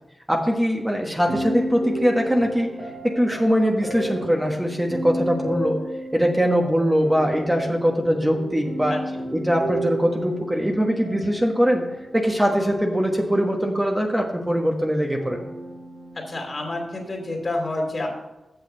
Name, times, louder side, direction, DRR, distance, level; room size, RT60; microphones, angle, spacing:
voice 1, 0.3-2.7 3.0-5.8 6.1-9.0 9.3-11.8 12.1-15.4, equal, 10° right, 1 dB, 1.3 m, -22 dB
sound 1, 1.1-13.9 15.2-17.4, right 1 dB, 75° right, 3.8 m, -33 dB
voice 2, 16.3-18.1, left 2 dB, 45° left, 1 dB, 2.7 m, -28 dB
8.0 x 6.5 x 5.6 m, 1.0 s
cardioid pair, 55°, 0 cm